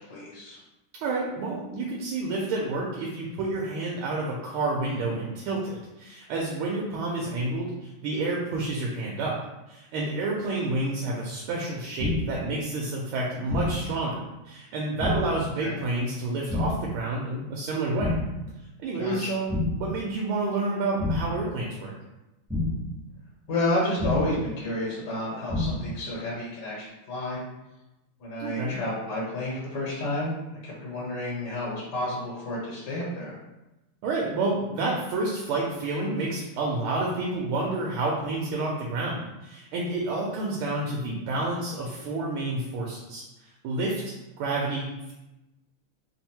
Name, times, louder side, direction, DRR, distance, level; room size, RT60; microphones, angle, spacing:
voice 1, 0.1-0.6 15.6-15.7 19.0-19.3 23.5-27.4 28.2-33.3, left 1 dB, 55° left, -7 dB, 1.5 m, -31 dB
voice 2, 1.0-9.4 9.7-18.1 18.8-21.9 28.4-28.8 34.0-45.1, right 2 dB, 80° right, -3 dB, 1.5 m, -29 dB
sound 1, 12.0-12.5 13.5-14.0 15.0-15.5 16.5-17.0 18.0-18.5 19.5-20.0 21.0-21.5 22.5-23.0 24.0-24.5 25.5-26.0, left 2 dB, 10° right, 0.4 m, -28 dB
3.7 x 2.1 x 4.3 m, 0.98 s
omnidirectional pair, 2.4 m